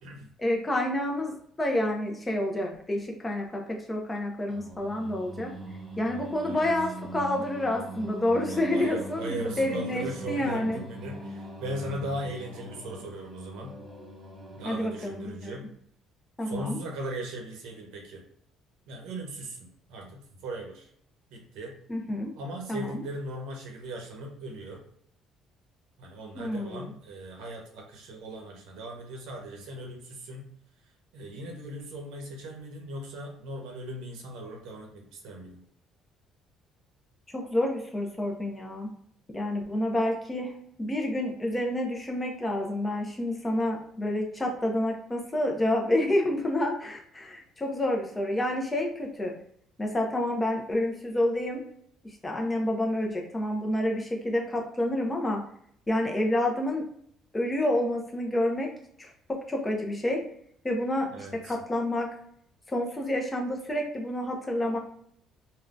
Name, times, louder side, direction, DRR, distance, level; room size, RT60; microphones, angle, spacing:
voice 1, 0.4-3.6 3.9-5.5 6.0-10.8 14.6-15.7 16.4-16.8 21.9-22.3 22.7-23.0 26.4-26.9 37.3-38.9 39.3-40.5 40.8-49.3 49.8-51.6 52.2-55.4 55.9-56.8 57.3-58.7 59.0-60.2 60.6-62.1 62.7-64.8, left 1 dB, 15° left, 0 dB, 0.5 m, -29 dB
Singing, 4.5-15.6, right 1 dB, 15° right, 0.8 m, -42 dB
voice 2, 6.4-6.7 8.3-13.7 14.6-15.6 16.4-18.2 18.9-20.9 21.3-21.7 22.3-24.8 26.0-30.5 31.1-35.6 61.1-61.5, right 1 dB, 85° right, 2 dB, 0.7 m, -38 dB
3.6 x 2.2 x 2.4 m, 0.67 s
cardioid pair, 130°, 0 cm